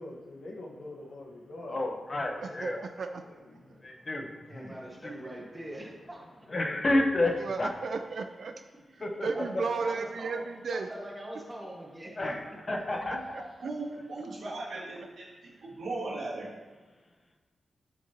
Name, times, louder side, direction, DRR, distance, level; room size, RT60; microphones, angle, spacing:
voice 1, 0.0-1.8 2.5-2.7 3.2-3.9 6.5-6.8 7.5-7.6, left 2 dB, 70° left, -1 dB, 1.4 m, -45 dB
voice 2, 1.7-2.8 3.8-4.7 5.0-5.1 6.5-7.3 7.6-7.7 9.0-9.3 12.2-13.2, left 2 dB, 35° left, 2 dB, 0.9 m, -30 dB
voice 3, 2.4-3.2 7.4-8.5 9.2-10.9 13.0-13.4, right 4 dB, 65° right, 6 dB, 0.4 m, -34 dB
voice 4, 4.5-6.2 9.3-10.4 10.7-12.4, right 1 dB, 15° right, -2 dB, 1.6 m, -43 dB
voice 5, 13.6-16.5, right 2 dB, 85° right, -6 dB, 2.5 m, -38 dB
8.4 x 6.6 x 2.9 m, 1.3 s
wide cardioid pair, 105°, 0 cm